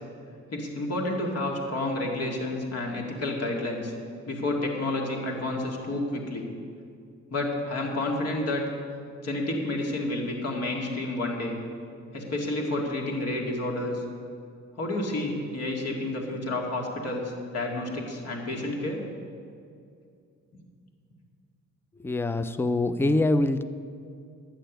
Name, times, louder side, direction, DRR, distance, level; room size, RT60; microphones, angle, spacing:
voice 1, 0.5-3.9 4.2-6.4 7.3-8.6 9.2-11.6 12.1-14.0 14.8-19.0, left 2 dB, 55° left, 0 dB, 2.1 m, -30 dB
voice 2, 22.0-23.6, left 2 dB, 10° left, 12 dB, 0.4 m, -24 dB
11.5 x 6.7 x 9.1 m, 2.3 s
cardioid pair, 110°, 30 cm